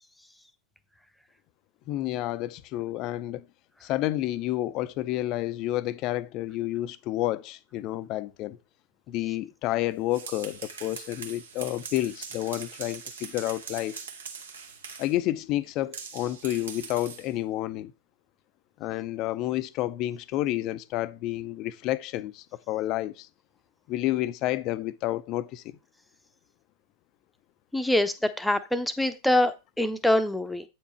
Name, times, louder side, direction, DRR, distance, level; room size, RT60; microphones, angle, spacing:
voice 1, 1.9-3.4 3.8-8.6 9.1-14.0 15.0-17.9 18.8-23.3 23.9-25.8, left 15 dB, 40° left, 0.5 m, -30 dB
sound 1, 9.9-15.2 15.9-17.3, right 6 dB, 65° right, 1.3 m, -42 dB
voice 2, 27.7-30.6, left 1 dB, 5° left, 0.8 m, -25 dB
8.6 x 4.6 x 4.3 m
figure-of-eight pair, 90°, 0 cm